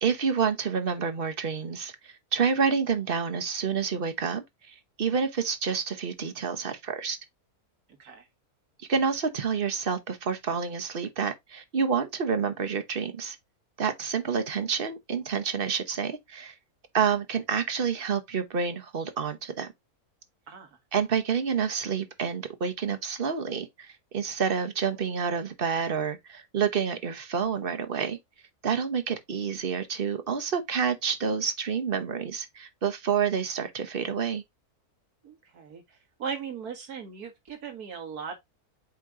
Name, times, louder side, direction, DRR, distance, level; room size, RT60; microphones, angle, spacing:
voice 1, 0.0-7.2 8.9-13.4 13.8-16.5 16.9-19.7 20.9-28.2 28.6-34.4, right 6 dB, 40° right, 1.0 m, -28 dB
voice 2, 20.5-20.8 35.2-38.4, right 6 dB, 80° right, 2.1 m, -38 dB
8.5 x 3.0 x 3.7 m
omnidirectional pair, 1.6 m